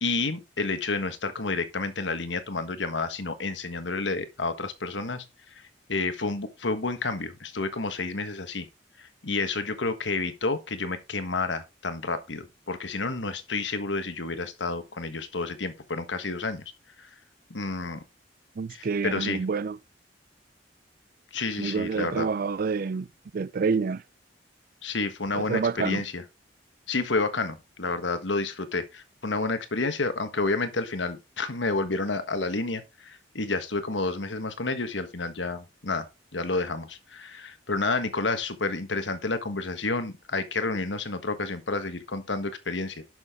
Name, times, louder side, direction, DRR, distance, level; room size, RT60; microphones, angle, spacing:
voice 1, 0.0-5.2 5.5-5.6 5.9-8.7 9.0-16.6 17.0-17.1 17.5-18.0 18.7-19.4 21.3-22.3 24.8-26.2 26.9-36.1 36.3-43.0, left 3 dB, 85° left, 1.5 m, -30 dB
voice 2, 18.6-19.8 21.6-23.1 23.3-24.0 25.4-26.0, right 5 dB, 55° right, 0.4 m, -28 dB
11.0 x 6.4 x 3.7 m
head